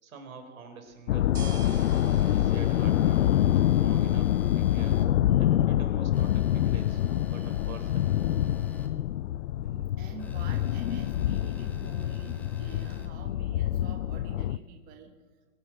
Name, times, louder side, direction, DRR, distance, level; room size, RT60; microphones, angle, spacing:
voice 1, 0.0-1.7 2.2-3.3 3.7-5.0 5.4-8.1, right 5 dB, 65° right, 6 dB, 4.2 m, -46 dB
sound 1, 0.9-13.0, right 4 dB, 90° right, 2.4 m, -51 dB
sound 2, 1.1-14.6, left 12 dB, 55° left, 0.5 m, -26 dB
sound 3, 1.6-5.0 6.1-8.9 10.2-13.1, left 2 dB, 5° left, 0.6 m, -49 dB
voice 2, 9.7-15.2, right 6 dB, 20° right, 5 dB, 1.1 m, -48 dB
22.5 x 10.5 x 6.0 m, 1.3 s
hypercardioid pair, 140°, 44 cm